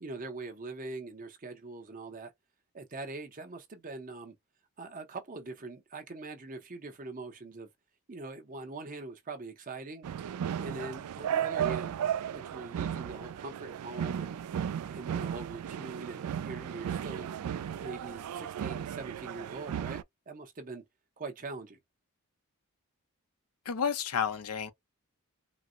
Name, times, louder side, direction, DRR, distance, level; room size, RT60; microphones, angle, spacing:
voice 1, 0.0-2.3 2.7-4.4 4.8-7.7 8.1-10.1 10.6-11.9 12.3-14.4 14.9-17.3 17.8-20.8 21.2-21.8, right 3 dB, 40° right, 0.7 m, -42 dB
sound 1, 10.0-20.0, right 9 dB, 85° right, 0.3 m, -35 dB
voice 2, 23.7-24.7, left 7 dB, 90° left, 0.7 m, -31 dB
3.9 x 2.1 x 2.5 m
head